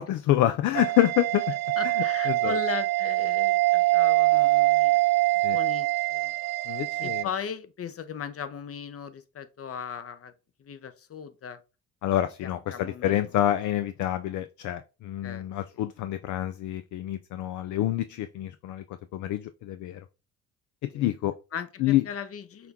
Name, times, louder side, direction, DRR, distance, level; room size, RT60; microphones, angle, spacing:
voice 1, 0.0-1.6 2.0-2.6 5.4-5.6 6.7-7.3 12.0-18.8 19.1-20.0 20.8-21.3 21.8-22.0, left 13 dB, 65° left, 0.4 m, -27 dB
sound 1, 0.7-7.2, right 19 dB, 60° right, 0.5 m, -24 dB
voice 2, 1.8-5.0 5.5-6.3 7.0-10.3 10.6-11.6 12.4-13.3 15.2-15.5 15.7-15.8 20.9-21.1 21.5-22.7, left 7 dB, 45° left, 0.8 m, -37 dB
5.8 x 2.2 x 3.6 m
supercardioid pair, 60°, 31 cm